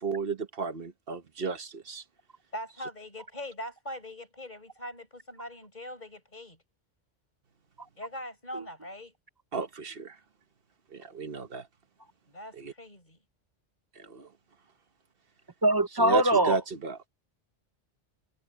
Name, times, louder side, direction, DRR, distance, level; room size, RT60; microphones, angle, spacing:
voice 1, 0.0-2.0 9.5-10.1 10.9-11.6 12.6-12.7 14.0-14.3 16.0-17.0, right 4 dB, 55° right, 1.5 m, -33 dB
voice 2, 2.5-6.6 8.0-9.1 12.3-13.2, equal, 40° left, 6.1 m, -41 dB
voice 3, 15.6-16.6, right 1 dB, 25° right, 0.7 m, -22 dB
omnidirectional pair, 1.1 m